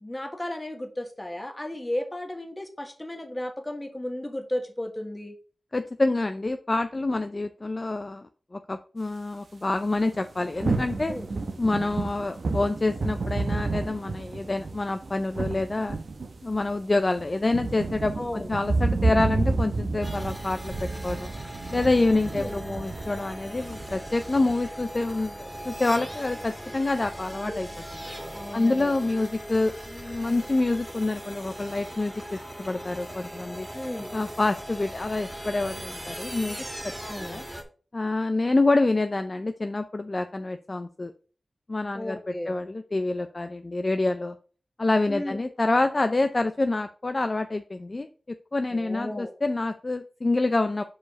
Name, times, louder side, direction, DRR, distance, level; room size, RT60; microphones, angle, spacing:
voice 1, 0.0-5.3 11.1-11.3 18.2-18.5 22.3-22.6 28.3-28.9 33.7-34.1 37.0-37.4 41.9-42.5 45.1-45.4 48.7-49.3, left 1 dB, 20° left, 5 dB, 1.5 m, -34 dB
voice 2, 5.7-11.2 11.6-16.0 16.4-21.3 21.7-28.0 28.5-33.7 34.1-36.6 36.8-36.9 37.2-37.4 37.9-41.1 41.7-44.4 44.8-50.8, left 2 dB, 40° left, 8 dB, 0.5 m, -27 dB
sound 1, 10.0-24.5, right 3 dB, 75° right, 0.9 m, -30 dB
sound 2, 20.0-37.6, equal, 10° right, 1.9 m, -39 dB
5.1 x 4.7 x 5.2 m, 0.39 s
cardioid pair, 55°, 0 cm